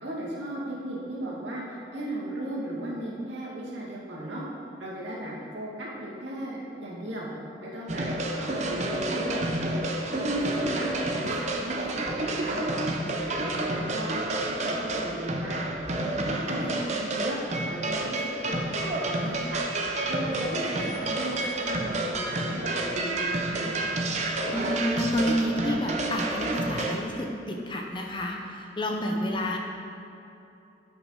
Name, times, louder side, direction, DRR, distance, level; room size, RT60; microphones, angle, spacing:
voice 1, 0.0-4.4 4.8-7.3 7.6-9.5 10.2-12.6 13.1-15.7 16.2-17.4 17.7-19.6 20.1-23.7, right 1 dB, 80° right, -5 dB, 2.3 m, -36 dB
sound 1, 7.9-27.0, right 2 dB, 35° right, 0.8 m, -29 dB
voice 2, 24.5-29.6, equal, 25° left, 1 dB, 0.8 m, -29 dB
9.7 x 6.2 x 5.7 m, 2.9 s
head